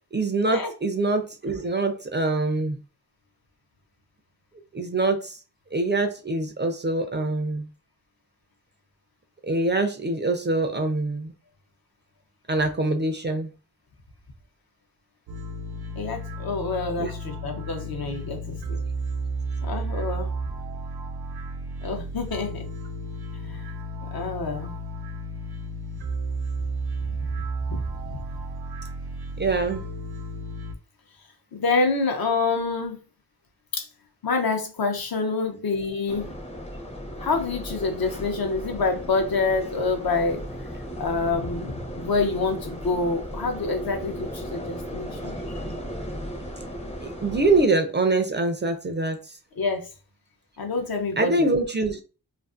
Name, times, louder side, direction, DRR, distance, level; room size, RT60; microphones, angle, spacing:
voice 1, 0.1-2.8 4.7-5.4 5.7-7.7 9.4-11.3 12.5-13.5 17.0-17.1 18.0-18.1 29.4-29.9 47.0-49.2 51.2-52.0, right 2 dB, 30° right, 6 dB, 0.4 m, -24 dB
sound 1, 15.3-30.7, right 2 dB, 85° right, 0.5 m, -33 dB
voice 2, 15.9-18.8 19.6-20.3 21.8-22.7 23.4-23.6 24.1-24.7 27.2-27.3 27.7-27.8 28.1-28.2 31.5-33.0 33.7-33.9 34.2-36.2 37.2-40.4 41.0-45.8 49.6-49.9 50.6-51.5, left 4 dB, 65° left, 4 dB, 0.7 m, -27 dB
sound 2, 36.1-47.7, equal, 15° left, 0.5 m, -36 dB
2.5 x 2.4 x 2.4 m, 0.34 s
wide cardioid pair, 70°, 39 cm